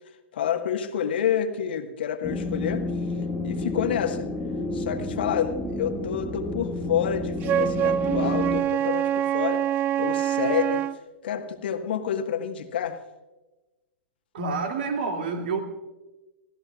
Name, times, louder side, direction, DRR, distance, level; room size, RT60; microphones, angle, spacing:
voice 1, 0.3-2.9 3.4-4.3 4.7-9.7 10.0-10.8 11.2-13.0, left 9 dB, 60° left, 7 dB, 1.5 m, -28 dB
sound 1, 2.2-8.6, left 2 dB, 5° left, 2.2 m, -30 dB
Wind instrument woodwind instrument, 7.4-11.0, right 10 dB, 30° right, 0.6 m, -25 dB
voice 2, 14.3-15.6, right 4 dB, 60° right, 4 dB, 2.5 m, -28 dB
29.5 x 16.0 x 2.4 m, 1.1 s
figure-of-eight pair, 105°, 6 cm